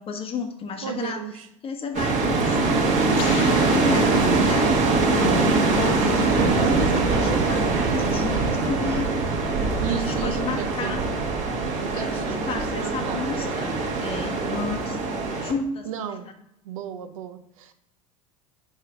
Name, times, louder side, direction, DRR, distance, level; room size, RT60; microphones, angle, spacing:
voice 1, 0.0-1.2 1.6-9.2 9.6-11.0 11.9-15.0 15.4-16.2, left 4 dB, 35° left, 6 dB, 1.0 m, -32 dB
voice 2, 0.8-1.5 9.8-10.9 11.8-13.2 14.3-14.7 15.8-16.3 16.6-17.7, right 9 dB, 80° right, 9 dB, 0.6 m, -34 dB
sound 1, 1.9-15.5, right 3 dB, 45° right, 1.3 m, -23 dB
sound 2, 3.2-5.0, left 10 dB, 70° left, 0.5 m, -38 dB
sound 3, 6.3-12.9, right 4 dB, 60° right, 1.3 m, -29 dB
5.0 x 4.3 x 4.5 m, 0.78 s
hypercardioid pair, 90°, 17 cm